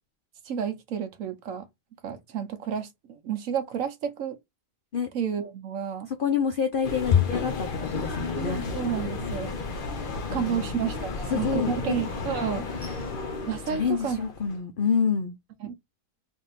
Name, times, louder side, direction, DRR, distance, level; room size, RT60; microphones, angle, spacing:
voice 1, 0.4-1.7 2.0-4.4 5.1-6.1 8.4-9.5 10.3-13.1 13.5-14.2 15.6-15.7, right 8 dB, 60° right, 1.1 m, -31 dB
voice 2, 6.1-8.6 10.3-10.8 11.3-12.0 13.7-15.4, left 7 dB, 75° left, 0.4 m, -27 dB
sound 1, 6.8-14.6, left 4 dB, 45° left, 0.8 m, -33 dB
3.5 x 2.7 x 4.0 m
omnidirectional pair, 1.7 m